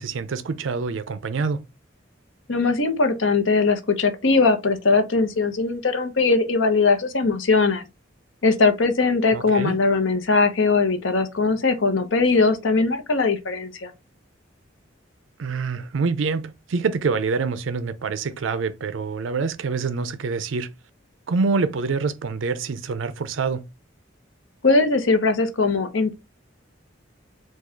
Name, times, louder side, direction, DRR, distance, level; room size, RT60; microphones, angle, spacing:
voice 1, 0.0-1.6 9.3-9.8 15.4-20.7 21.3-23.7, right 4 dB, 80° right, 0.5 m, -26 dB
voice 2, 2.5-7.8 8.4-13.9 24.6-26.1, left 3 dB, 80° left, 0.8 m, -20 dB
4.7 x 2.3 x 4.3 m
head